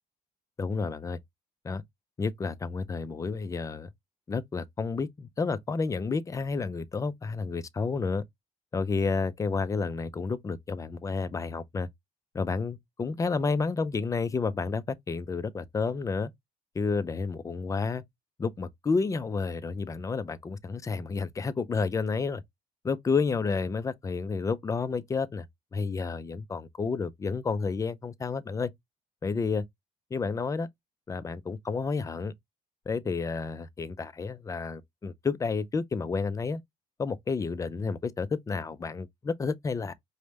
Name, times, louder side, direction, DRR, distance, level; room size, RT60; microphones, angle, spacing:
voice 1, 0.6-1.2 1.6-1.8 2.2-3.9 4.3-8.2 8.7-11.9 12.3-16.3 16.7-18.0 18.4-22.4 22.8-25.5 25.7-28.7 29.2-29.6 30.1-30.7 31.1-32.3 32.9-36.6 37.0-39.9, left 4 dB, 20° left, 0.4 m, -30 dB
5.0 x 2.1 x 3.1 m
cardioid pair, 110°, 17 cm